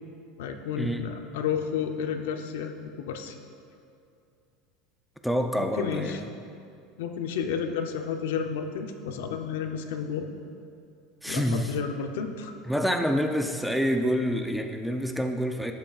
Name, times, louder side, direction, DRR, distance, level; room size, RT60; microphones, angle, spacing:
voice 1, 0.4-3.4 5.6-6.2 7.0-10.3 11.3-12.5, left 7 dB, 85° left, 6 dB, 0.7 m, -31 dB
voice 2, 5.2-6.3 11.2-11.7 12.7-15.7, equal, ahead, 5 dB, 0.3 m, -27 dB
11.5 x 7.7 x 2.4 m, 2.5 s
supercardioid pair, 170°, 0 cm